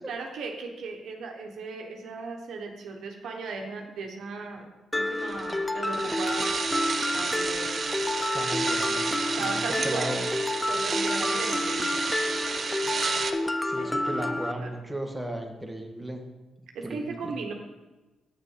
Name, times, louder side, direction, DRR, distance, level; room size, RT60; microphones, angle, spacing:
voice 1, 0.1-7.7 9.2-10.1 10.7-12.0 13.8-14.3 14.5-14.7 16.7-17.5, right 4 dB, 75° right, 2 dB, 1.2 m, -37 dB
Mallet percussion, 4.9-14.5, left 2 dB, 15° left, 0.5 m, -29 dB
sound 1, 5.3-13.3, right 5 dB, 50° right, 0.7 m, -31 dB
voice 2, 8.3-9.6 9.8-10.3 13.6-16.2 16.8-17.3, right 1 dB, 10° right, 2 dB, 1.5 m, -35 dB
7.9 x 6.2 x 5.6 m, 1.1 s
supercardioid pair, 60°, 0 cm